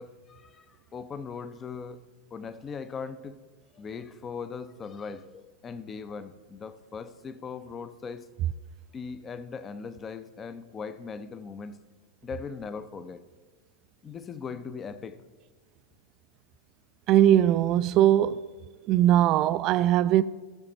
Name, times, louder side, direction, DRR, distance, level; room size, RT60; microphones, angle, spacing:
voice 1, 0.0-2.0 2.3-3.4 3.7-8.3 8.9-11.8 12.2-13.2 14.0-15.2, left 5 dB, 20° left, 0.6 m, -39 dB
voice 2, 17.1-18.4 18.9-20.2, right 12 dB, 35° right, 0.3 m, -20 dB
17.5 x 6.6 x 3.0 m
figure-of-eight pair, 90°, 0 cm